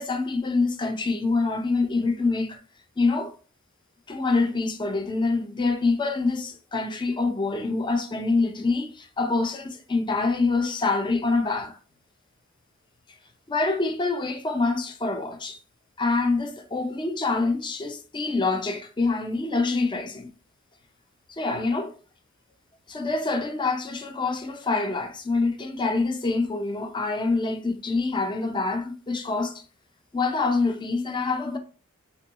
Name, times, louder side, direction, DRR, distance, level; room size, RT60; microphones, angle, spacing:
voice 1, 0.0-2.6 3.0-3.4 4.1-11.8 13.5-15.6 16.0-20.3 21.3-21.9 22.9-29.6 30.1-31.6, left 3 dB, 25° left, 0.4 m, -26 dB
3.6 x 2.2 x 2.8 m
head